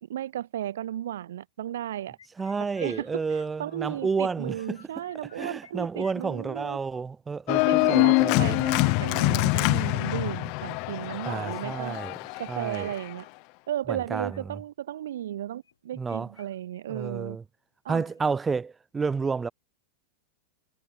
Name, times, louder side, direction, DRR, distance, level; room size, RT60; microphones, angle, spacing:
voice 1, 0.0-2.2 2.8-6.8 7.5-12.0 12.4-13.2 13.7-17.4 17.8-18.0, right 11 dB, 60° right, 3.1 m, -34 dB
sound 1, 2.2-4.1 4.4-5.7 6.0-7.0 7.7-13.3 14.1-14.4 15.6-16.5 16.7-16.8 17.3-17.4 18.0-18.3, left 7 dB, 70° left, 4.3 m, -56 dB
voice 2, 2.4-4.8 5.4-8.6 11.2-12.1 12.5-12.9 13.9-14.3 16.0-16.3 16.9-17.4 17.9-19.5, right 5 dB, 15° right, 1.6 m, -30 dB
Organ, 7.5-13.1, left 32 dB, 45° left, 0.3 m, -25 dB
figure-of-eight pair, 90°, 0 cm